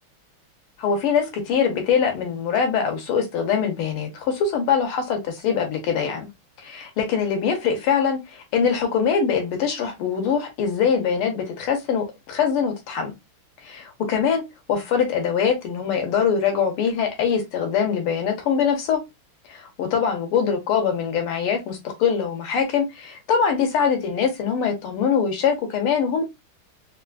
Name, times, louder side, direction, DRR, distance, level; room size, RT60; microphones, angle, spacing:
voice 1, 0.8-6.3 6.6-13.1 13.6-14.4 14.7-19.0 19.5-26.2, left 6 dB, 80° left, 1.9 m, -23 dB
4.2 x 2.3 x 2.4 m
omnidirectional pair, 2.4 m